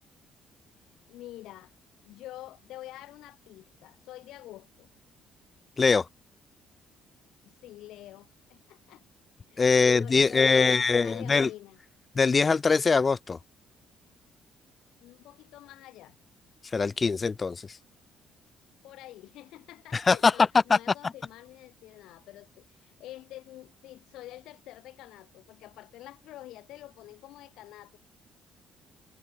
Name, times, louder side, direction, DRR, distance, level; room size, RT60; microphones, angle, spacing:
voice 1, 1.1-1.7 2.0-4.9 7.4-9.0 9.5-11.8 15.0-16.2 18.8-28.0, left 15 dB, 75° left, 6.8 m, -47 dB
voice 2, 9.6-11.5 12.2-13.4 16.7-17.8 19.9-20.3 20.7-20.8, left 4 dB, 20° left, 0.6 m, -22 dB
cardioid pair, 180°, 0 cm